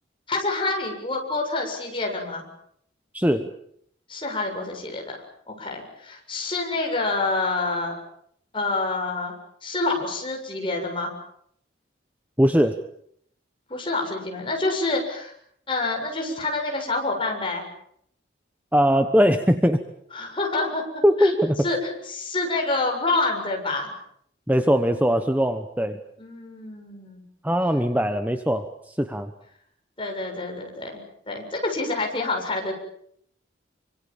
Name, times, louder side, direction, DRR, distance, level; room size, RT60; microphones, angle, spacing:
voice 1, 0.3-2.4 4.1-5.2 5.5-8.0 8.5-9.3 9.6-11.1 13.7-15.3 15.7-17.6 20.1-20.8 21.2-21.4 21.6-23.9 26.2-27.2 30.0-31.0 31.3-32.7, left 2 dB, 25° left, 1 dB, 7.3 m, -27 dB
voice 2, 3.1-3.5 12.4-12.8 18.7-19.8 21.0-21.7 24.5-26.0 27.4-29.3, equal, 10° right, 7 dB, 1.1 m, -21 dB
27.5 x 25.0 x 7.4 m, 0.69 s
head